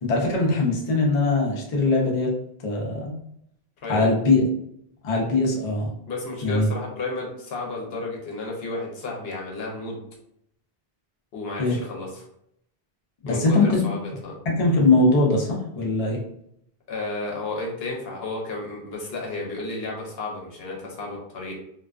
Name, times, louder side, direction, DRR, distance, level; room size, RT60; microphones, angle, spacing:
voice 1, 0.0-2.3 2.6-3.2 3.9-4.4 5.0-5.9 6.4-6.7 11.6-11.8 13.2-13.8 14.5-16.2, left 3 dB, 45° left, -2 dB, 0.5 m, -21 dB
voice 2, 3.8-4.1 6.1-10.0 11.3-12.3 13.3-14.4 16.9-21.5, left 3 dB, 70° left, -1 dB, 0.9 m, -32 dB
2.4 x 2.2 x 2.4 m, 0.74 s
omnidirectional pair, 1.1 m